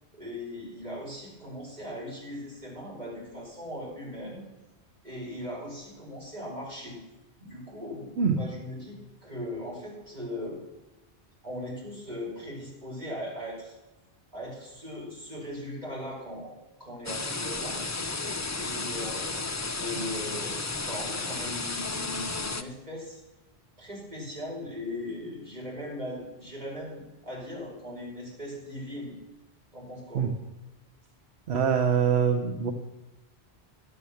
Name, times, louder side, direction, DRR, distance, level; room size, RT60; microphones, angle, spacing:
voice 1, 0.1-4.4 5.0-7.0 7.4-8.1 8.4-10.6 11.4-13.7 14.3-17.8 18.6-23.2 23.8-29.1 29.7-30.3, left 1 dB, 40° right, -5 dB, 4.8 m, -39 dB
sound 1, 17.1-22.6, left 3 dB, 25° left, 0.4 m, -33 dB
voice 2, 31.5-32.7, right 7 dB, 70° right, 5 dB, 1.2 m, -24 dB
11.5 x 7.8 x 7.0 m, 1.0 s
omnidirectional pair, 1.1 m